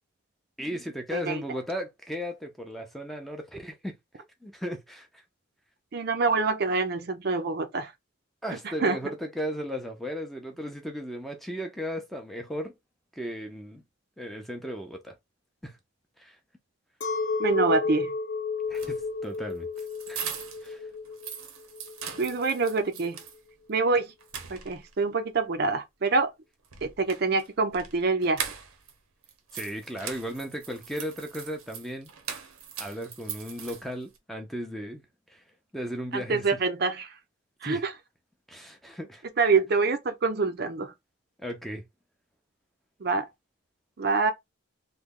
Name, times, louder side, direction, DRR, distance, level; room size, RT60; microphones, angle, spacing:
voice 1, 0.6-3.9 4.4-5.2 8.4-12.7 13.2-13.8 14.2-15.1 15.6-15.8 16.2-16.4 18.7-19.7 20.1-20.2 20.6-20.9 29.5-32.1 32.8-35.0 35.3-35.4 35.7-36.6 37.6-37.9 38.5-39.2 41.4-41.8, equal, ahead, 0.5 m, -36 dB
voice 2, 1.1-1.4 5.9-7.9 8.8-9.0 17.4-18.1 22.2-23.2 23.7-24.1 24.5-26.3 26.8-28.4 36.1-37.1 37.6-37.9 39.4-40.9 43.0-43.3 44.0-44.3, right 4 dB, 50° right, 0.5 m, -26 dB
Chink clink, 17.0-22.5, left 4 dB, 60° left, 0.6 m, -32 dB
sound 1, 18.6-20.7 21.1-23.4 23.8-23.9 24.2-25.0 26.6-28.9 29.2-34.2, right 7 dB, 90° right, 0.8 m, -40 dB
3.1 x 2.2 x 3.6 m
head